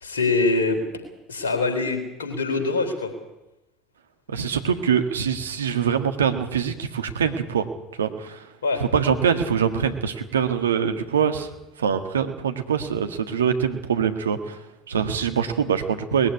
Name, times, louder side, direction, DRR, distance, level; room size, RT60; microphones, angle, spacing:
voice 1, 0.0-0.8 1.3-3.1 8.6-8.8, left 3 dB, 85° left, 6 dB, 3.6 m, -24 dB
voice 2, 4.3-7.7 8.0-8.4 8.8-11.5 11.8-14.6 14.9-16.3, right 7 dB, 85° right, 8 dB, 1.6 m, -24 dB
20.5 x 14.5 x 9.7 m, 0.95 s
hypercardioid pair, 70°, 0 cm